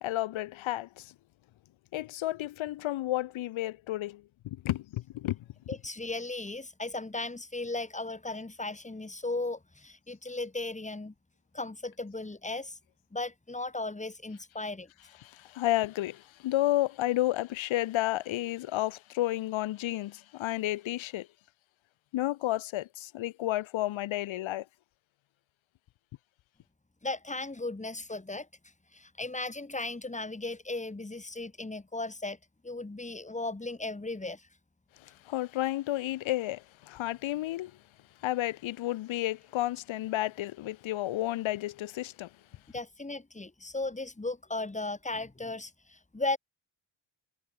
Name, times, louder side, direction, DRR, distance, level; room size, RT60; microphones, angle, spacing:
voice 1, 0.0-1.1 1.9-5.5 15.2-21.3 22.1-24.7 35.0-37.8 38.2-42.3, left 15 dB, 70° left, 0.6 m, -31 dB
voice 2, 5.7-11.1 11.5-12.8 13.1-14.9 27.0-28.5 28.9-32.4 32.6-34.5 42.7-46.4, left 2 dB, 15° left, 2.6 m, -36 dB
cardioid pair, 100°, 48 cm